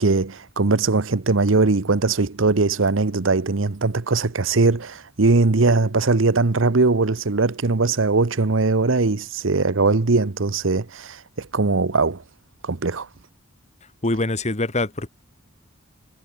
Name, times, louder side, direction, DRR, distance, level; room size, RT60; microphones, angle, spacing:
voice 1, 0.0-12.2 12.6-13.1, right 3 dB, 70° right, 1.0 m, -20 dB
voice 2, 14.0-15.1, left 2 dB, 35° left, 1.7 m, -24 dB
head